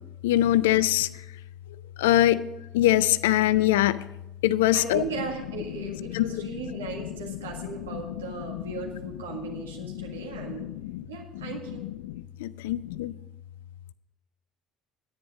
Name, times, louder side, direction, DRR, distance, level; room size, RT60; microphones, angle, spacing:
voice 1, 0.2-1.2 2.0-2.5 2.7-4.0 4.4-5.0 5.9-6.3 6.7-6.8 7.2-8.6 9.3-11.1 11.3-13.2, left 14 dB, 70° left, 17 dB, 0.4 m, -25 dB
voice 2, 4.7-10.7 11.1-11.9, right 4 dB, 75° right, 1 dB, 1.7 m, -37 dB
10.0 x 9.6 x 5.0 m, 0.92 s
figure-of-eight pair, 60°, 0 cm